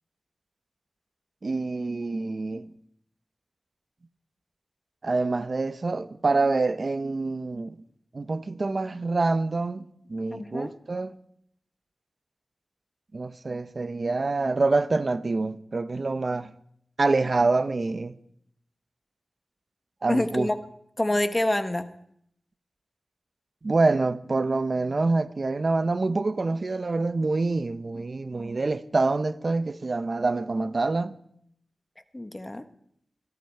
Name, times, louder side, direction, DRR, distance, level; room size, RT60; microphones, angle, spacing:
voice 1, 1.4-2.6 5.0-7.8 8.1-11.1 13.1-16.5 17.0-18.1 20.0-20.5 23.6-31.2, right 3 dB, 50° right, 0.8 m, -26 dB
voice 2, 10.3-10.7 20.1-20.6 21.0-21.9 32.1-32.6, left 1 dB, 25° left, 1.1 m, -26 dB
17.0 x 13.5 x 4.6 m
wide cardioid pair, 65°, 0 cm